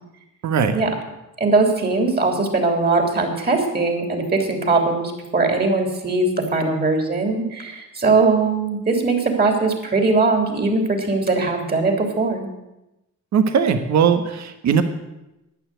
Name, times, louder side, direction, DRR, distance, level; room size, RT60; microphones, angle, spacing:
voice 1, 0.4-0.8 13.3-14.8, right 7 dB, 65° right, 9 dB, 1.5 m, -19 dB
voice 2, 1.4-12.5, right 3 dB, 30° right, 3 dB, 3.4 m, -20 dB
11.5 x 9.5 x 7.9 m, 0.94 s
cardioid pair, 90°, 30 cm